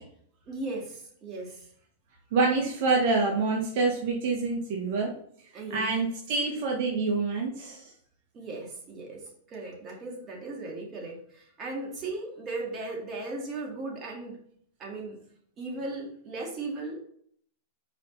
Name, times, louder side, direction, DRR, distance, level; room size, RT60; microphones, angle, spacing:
voice 1, 0.5-1.7 5.5-6.1 8.3-14.4 14.8-15.2 15.6-17.0, right 2 dB, 30° right, -1 dB, 2.4 m, -37 dB
voice 2, 2.3-5.1 5.7-7.8, right 3 dB, 55° right, -1 dB, 1.5 m, -26 dB
5.3 x 5.2 x 4.1 m, 0.62 s
hypercardioid pair, 125°, 0 cm